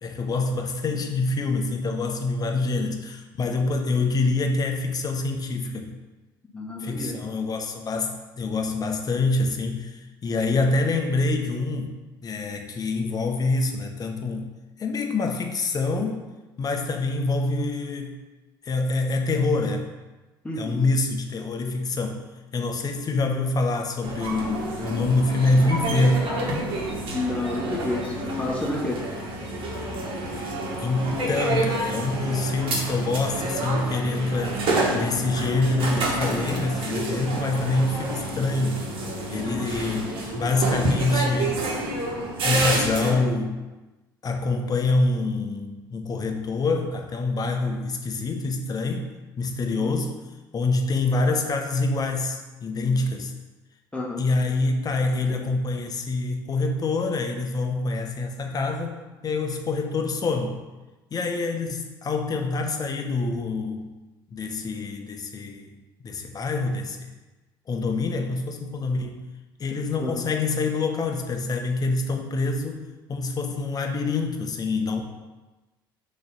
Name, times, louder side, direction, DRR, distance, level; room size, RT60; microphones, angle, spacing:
voice 1, 0.0-6.0 6.8-11.9 12.2-14.5 14.8-16.2 16.6-18.2 18.6-19.9 20.6-22.2 22.5-26.3 30.4-30.5 30.8-34.6 34.9-38.8 39.3-41.6 42.4-43.6 44.2-49.1 49.4-50.1 50.5-53.3 54.2-60.6 61.1-63.9 64.3-65.7 66.0-67.1 67.7-69.2 69.6-75.0, left 3 dB, 30° left, 4 dB, 0.9 m, -26 dB
voice 2, 6.5-7.2 20.4-20.8 27.1-29.0 49.8-49.9 53.9-54.2 70.0-70.1, left 2 dB, 10° left, -2 dB, 1.5 m, -29 dB
sound 1, 24.0-43.1, right 1 dB, 50° right, 1.7 m, -28 dB
6.3 x 3.2 x 5.6 m, 1.1 s
figure-of-eight pair, 60°, 12 cm